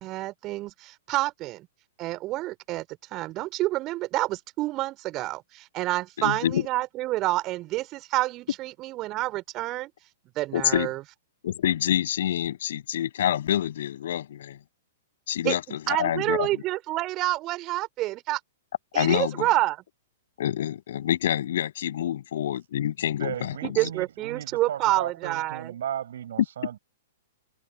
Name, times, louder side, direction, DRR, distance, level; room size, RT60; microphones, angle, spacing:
voice 1, 0.0-1.7 2.0-2.8 3.1-9.9 10.4-11.0 15.4-15.5 15.9-18.4 18.9-19.8 23.6-25.7, right 17 dB, 30° right, 3.5 m, -28 dB
voice 2, 6.2-6.7 10.5-10.9 11.4-14.6 15.3-16.5 18.9-19.5 20.4-23.8, left 11 dB, 55° left, 6.4 m, -27 dB
voice 3, 23.2-26.8, right 10 dB, 55° right, 7.2 m, -35 dB
figure-of-eight pair, 105°, 0 cm